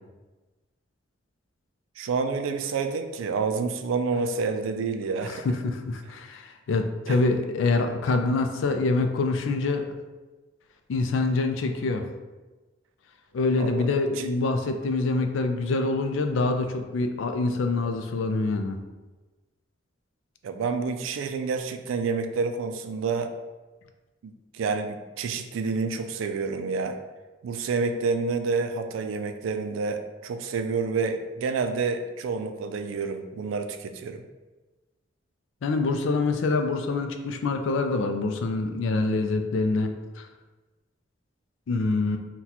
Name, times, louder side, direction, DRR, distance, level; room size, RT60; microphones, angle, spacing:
voice 1, 2.0-5.5 7.1-7.2 13.6-13.9 14.2-14.3 20.4-23.3 24.2-27.0 27.4-34.2, right 4 dB, 90° right, 7 dB, 0.3 m, -28 dB
voice 2, 5.3-10.0 10.9-12.1 13.3-18.8 35.6-40.3 41.7-42.2, left 3 dB, 80° left, 6 dB, 0.4 m, -25 dB
3.9 x 2.2 x 2.8 m, 1.2 s
head